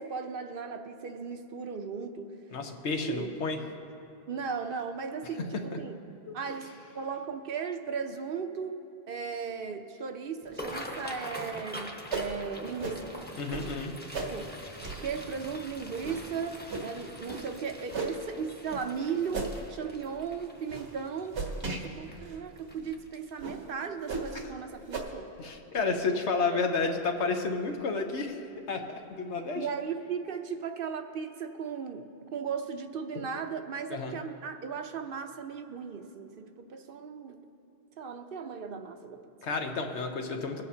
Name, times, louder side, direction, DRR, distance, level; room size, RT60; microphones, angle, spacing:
voice 1, 0.0-2.4 3.1-3.3 4.3-6.0 6.3-8.8 9.1-13.1 14.3-14.5 15.0-21.4 21.7-25.3 25.9-26.0 26.5-26.6 29.6-37.4 38.0-39.3, right 6 dB, 60° right, 6 dB, 0.8 m, -36 dB
voice 2, 2.5-3.6 13.4-13.9 25.4-29.7 33.1-33.2 33.9-34.2 39.4-40.6, left 4 dB, 80° left, 4 dB, 1.2 m, -31 dB
sound 1, 10.4-23.5 24.0-24.3 24.6-25.0 25.4-25.6 26.8-27.0 27.4-27.5 28.0-28.1, equal, 10° left, 0.9 m, -45 dB
sound 2, 12.1-12.3 12.8-13.0 13.5-13.7 14.1-14.3 14.8-15.0 15.5-15.6 16.0-16.2 16.7-16.9 17.2-17.5 17.9-18.2 18.7-18.9 19.3-19.6 20.0-20.2 20.7-20.9 21.3-21.8 22.3-22.4 22.8-22.9 23.4-23.6 24.1-24.4 24.9-25.0, right 3 dB, 85° right, 1.5 m, -35 dB
22.0 x 8.3 x 2.8 m, 2.9 s
omnidirectional pair, 1.1 m